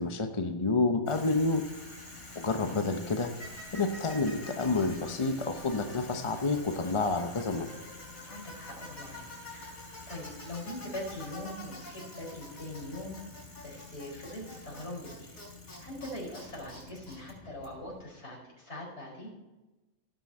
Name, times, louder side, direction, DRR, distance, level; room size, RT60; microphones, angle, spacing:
voice 1, 0.0-1.6 2.4-3.3 3.7-7.7, left 3 dB, 30° left, 6 dB, 0.6 m, -29 dB
Bicycle, 1.1-18.1, left 2 dB, 85° left, 5.3 m, -46 dB
voice 2, 8.2-13.2 13.6-15.4 15.8-19.3, left 1 dB, 50° left, -4 dB, 4.9 m, -42 dB
17.5 x 6.1 x 4.3 m, 1.1 s
omnidirectional pair, 1.5 m